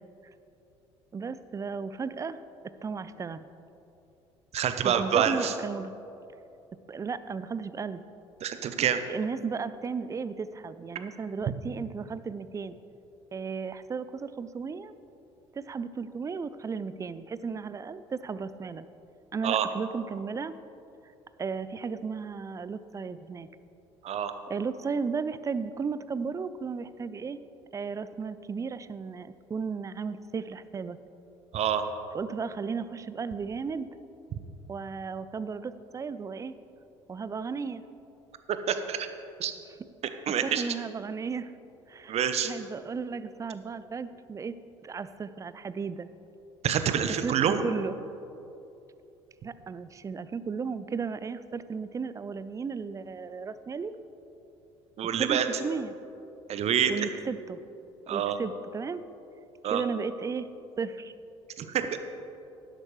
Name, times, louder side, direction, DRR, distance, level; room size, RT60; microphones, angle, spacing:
voice 1, 1.1-2.4 2.8-3.5 4.8-5.9 6.9-8.0 9.1-12.8 13.3-14.9 15.5-18.8 19.3-20.6 21.4-23.5 24.5-27.4 27.7-31.0 32.1-33.9 34.7-36.5 37.1-37.8 40.4-41.5 41.9-44.6 44.8-46.1 47.2-48.0 49.4-54.0 55.0-55.9 56.9-57.6 58.1-59.0 59.6-60.5 60.8-61.1, right 5 dB, 20° right, 14 dB, 0.4 m, -34 dB
voice 2, 4.5-5.5 8.4-9.0 19.4-19.7 24.0-24.3 31.5-31.8 38.5-39.1 39.4-39.6 40.3-40.6 42.1-42.5 46.6-47.6 55.0-55.5 56.5-56.9 58.1-58.4 59.6-59.8 61.6-62.0, right 8 dB, 45° right, 9 dB, 0.8 m, -27 dB
12.5 x 10.5 x 3.2 m, 2.9 s
figure-of-eight pair, 60°, 16 cm